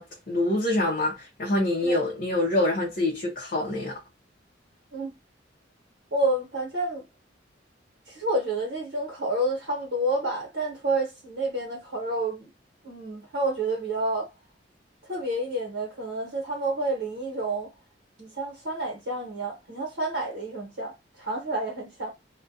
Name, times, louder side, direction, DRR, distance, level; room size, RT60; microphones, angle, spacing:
voice 1, 0.0-4.0, left 1 dB, 50° left, 0.6 m, -26 dB
voice 2, 6.1-7.0 8.1-12.5 12.8-14.3 15.1-17.7 18.2-22.1, right 2 dB, 70° right, 1.0 m, -29 dB
2.3 x 2.2 x 2.6 m
head